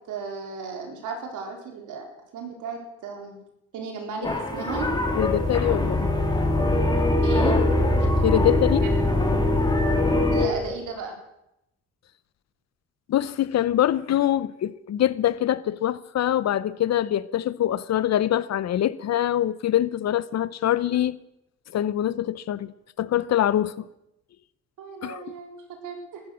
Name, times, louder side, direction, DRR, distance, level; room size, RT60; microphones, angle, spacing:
voice 1, 0.1-2.1 2.3-3.4 3.7-4.9 7.2-7.6 8.8-8.9 10.3-11.2 24.8-25.6 25.8-26.2, right 5 dB, 85° right, 4.1 m, -35 dB
sound 1, 4.2-10.5, left 1 dB, 15° left, 3.5 m, -22 dB
voice 2, 5.1-6.1 8.2-8.9 13.1-21.2 21.7-22.7 23.0-23.8 25.0-25.2, left 12 dB, 60° left, 0.9 m, -24 dB
14.5 x 13.5 x 6.4 m
cardioid pair, 90°, 30 cm